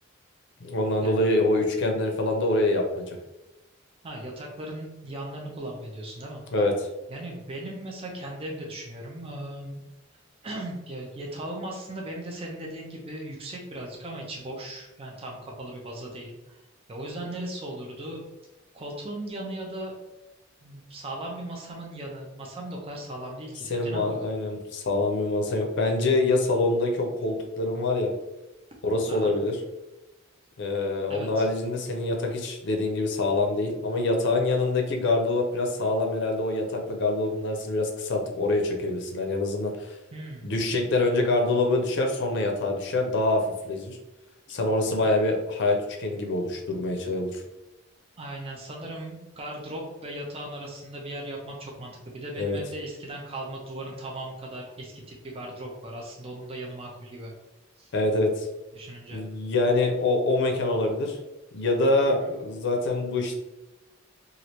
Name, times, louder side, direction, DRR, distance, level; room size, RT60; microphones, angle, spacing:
voice 1, 0.6-3.1 6.5-6.7 23.7-28.1 28.8-29.6 30.6-39.9 40.4-44.0 44.5-47.4 52.4-52.6 57.9-58.5 59.1-61.2 61.5-63.4, left 2 dB, 65° left, 2 dB, 0.5 m, -25 dB
voice 2, 4.0-6.4 7.1-9.8 10.4-16.6 16.9-18.2 18.7-19.9 20.6-24.3 29.1-29.3 31.1-31.5 40.1-40.5 48.2-57.3 57.8-57.9 58.7-59.2 62.0-62.3, right 1 dB, 30° right, -1 dB, 0.5 m, -38 dB
3.1 x 2.5 x 2.8 m, 0.99 s
head